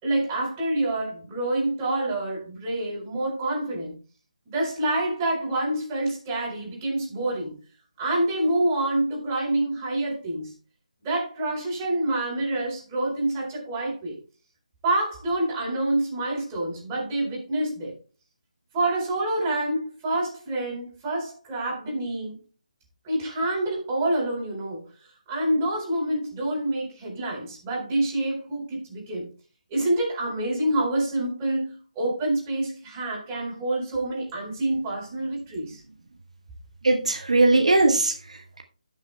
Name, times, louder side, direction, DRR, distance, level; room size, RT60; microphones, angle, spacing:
voice 1, 0.0-3.9 4.5-7.5 8.0-10.5 11.0-14.2 14.8-17.9 18.7-22.4 23.0-24.8 25.3-29.3 29.7-35.8, right 1 dB, 15° right, 4.3 m, -27 dB
voice 2, 36.8-38.6, right 2 dB, 65° right, 1.2 m, -20 dB
16.5 x 6.3 x 2.2 m
figure-of-eight pair, 150°, 4 cm